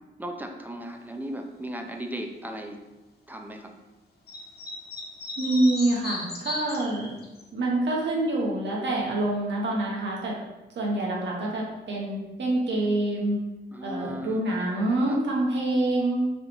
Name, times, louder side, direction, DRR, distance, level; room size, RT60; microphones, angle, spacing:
voice 1, 0.2-2.8 3.3-3.7 13.7-14.4 15.1-15.2, equal, 10° right, 3 dB, 0.6 m, -36 dB
sound 1, 4.3-7.4, left 2 dB, 60° left, 1.0 m, -35 dB
voice 2, 5.4-7.2 7.5-10.4 10.8-13.4 13.8-16.3, right 2 dB, 75° right, -3 dB, 1.1 m, -26 dB
4.0 x 3.1 x 3.8 m, 1.1 s
cardioid pair, 65°, 19 cm